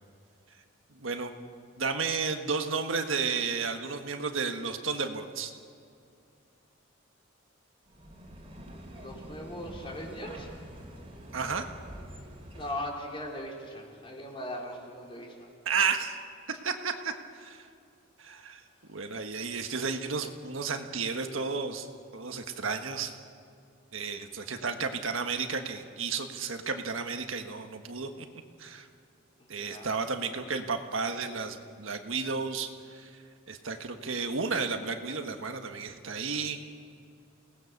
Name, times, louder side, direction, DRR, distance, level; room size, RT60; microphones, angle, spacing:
voice 1, 0.9-1.3 1.8-5.5 11.3-11.7 15.6-16.2 16.5-17.7 18.2-21.9 22.1-23.2 23.9-28.3 28.6-28.9 29.5-33.2 33.5-36.6, right 5 dB, 85° right, 5 dB, 1.5 m, -32 dB
sound 1, 7.9-12.9, equal, 30° right, 2.9 m, -46 dB
voice 2, 8.9-10.5 12.5-15.5 29.4-29.9, left 1 dB, 25° left, -1 dB, 3.8 m, -39 dB
28.5 x 19.0 x 6.7 m, 2.4 s
head